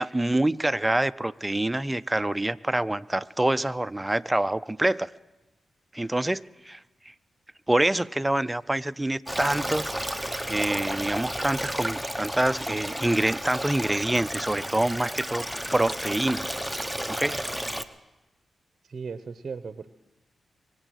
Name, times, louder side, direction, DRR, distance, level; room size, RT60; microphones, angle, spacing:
voice 1, 0.0-5.1 5.9-6.8 7.7-15.5 15.7-16.5 17.1-17.4, right 1 dB, 15° right, 0.5 m, -26 dB
Stream, 9.3-17.8, equal, ahead, 0.9 m, -32 dB
voice 2, 18.8-19.9, right 5 dB, 55° right, 0.7 m, -37 dB
23.0 x 8.2 x 6.3 m
supercardioid pair, 40°, 0 cm